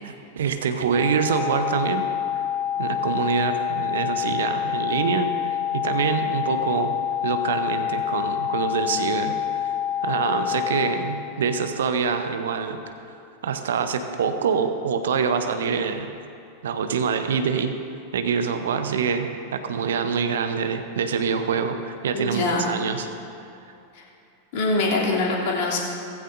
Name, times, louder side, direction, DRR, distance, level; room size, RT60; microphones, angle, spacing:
voice 1, 0.0-2.0 2.8-6.9 7.2-9.7 10.0-12.8 13.1-13.2 13.4-16.1 16.6-17.7 18.1-23.1, right 6 dB, 60° right, 8 dB, 0.8 m, -25 dB
sound 1, 0.9-10.9, left 10 dB, 10° right, 1.1 m, -27 dB
voice 2, 22.1-22.7 23.9-24.0 24.5-25.9, left 2 dB, 50° left, -3 dB, 2.9 m, -24 dB
16.5 x 15.0 x 2.6 m, 2.7 s
figure-of-eight pair, 90°, 0 cm